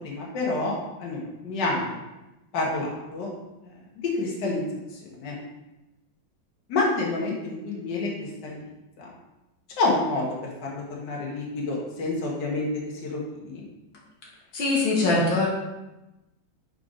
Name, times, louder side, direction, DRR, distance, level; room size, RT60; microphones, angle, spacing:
voice 1, 0.0-0.7 1.0-1.9 2.5-3.3 3.6-3.7 4.1-4.6 5.0-5.4 6.7-8.6 9.0-9.1 9.8-10.3 10.6-12.7 13.0-13.6, left 2 dB, 65° left, -3 dB, 1.9 m, -28 dB
voice 2, 14.5-15.5, left 2 dB, 85° left, -3 dB, 1.9 m, -22 dB
5.5 x 4.0 x 5.0 m, 0.99 s
omnidirectional pair, 2.1 m